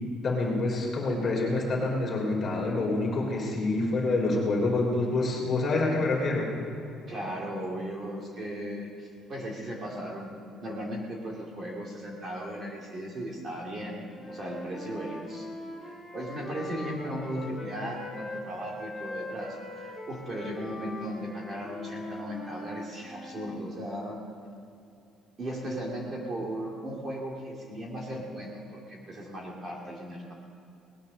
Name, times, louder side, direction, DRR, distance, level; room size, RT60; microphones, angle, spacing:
voice 1, 0.2-6.5, left 2 dB, 30° left, -2 dB, 3.1 m, -27 dB
voice 2, 7.1-15.5 15.8-24.2 25.4-30.3, equal, 30° right, -2 dB, 2.3 m, -37 dB
Wind instrument woodwind instrument, 14.1-18.5 18.8-23.6, left 2 dB, 5° left, 1.6 m, -42 dB
19.0 x 9.9 x 6.6 m, 2.7 s
cardioid pair, 175°, 0 cm